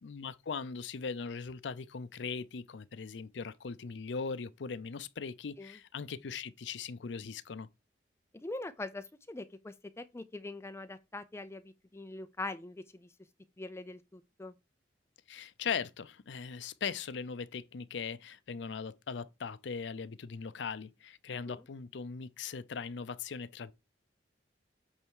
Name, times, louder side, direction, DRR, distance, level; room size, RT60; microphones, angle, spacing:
voice 1, 0.0-7.7 15.3-23.7, left 5 dB, 75° left, 0.5 m, -39 dB
voice 2, 8.3-13.1 13.6-14.5 21.5-21.6, left 2 dB, 15° left, 0.4 m, -43 dB
8.6 x 3.4 x 4.6 m
head